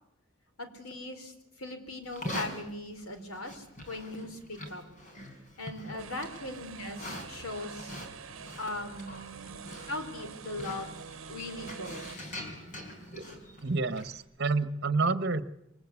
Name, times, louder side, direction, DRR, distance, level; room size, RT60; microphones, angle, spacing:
voice 1, 0.6-4.8 5.6-8.0 8.6-9.6 9.9-10.9 11.3-12.4, left 2 dB, 85° left, 7 dB, 4.4 m, -39 dB
Livestock farm animals working animals, 2.0-14.2, left 1 dB, 35° left, 4.8 m, -44 dB
sound 1, 6.0-12.2, right 5 dB, 70° right, 1.0 m, -46 dB
voice 2, 13.6-15.4, right 3 dB, 50° right, 12 dB, 1.3 m, -28 dB
27.5 x 24.0 x 8.5 m, 0.84 s
head